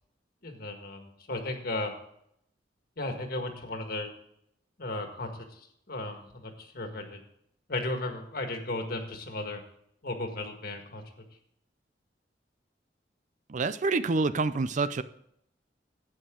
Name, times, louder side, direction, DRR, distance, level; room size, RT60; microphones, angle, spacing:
voice 1, 0.4-1.9 3.0-4.1 4.8-7.2 7.7-9.6 10.0-11.2, left 2 dB, 55° left, 5 dB, 1.7 m, -35 dB
voice 2, 13.5-15.0, right 3 dB, 45° right, 14 dB, 0.5 m, -27 dB
11.5 x 8.9 x 3.7 m, 0.72 s
head